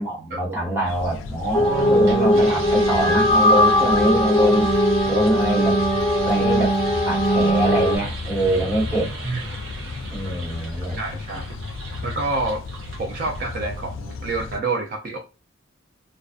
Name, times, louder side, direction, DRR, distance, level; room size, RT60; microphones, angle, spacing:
voice 1, 0.0-4.7 5.1-5.8 6.2-6.8 7.0-9.1 10.1-11.0, right 1 dB, 10° right, 1.0 m, -24 dB
sound 1, 0.9-14.6, left 3 dB, 80° left, 0.3 m, -34 dB
sound 2, 1.4-13.9, right 3 dB, 75° right, 0.8 m, -38 dB
sound 3, 1.5-8.0, equal, 15° left, 0.4 m, -19 dB
voice 2, 11.0-11.6 12.0-12.6 13.0-15.2, right 3 dB, 45° right, 0.4 m, -28 dB
2.5 x 2.3 x 2.3 m
head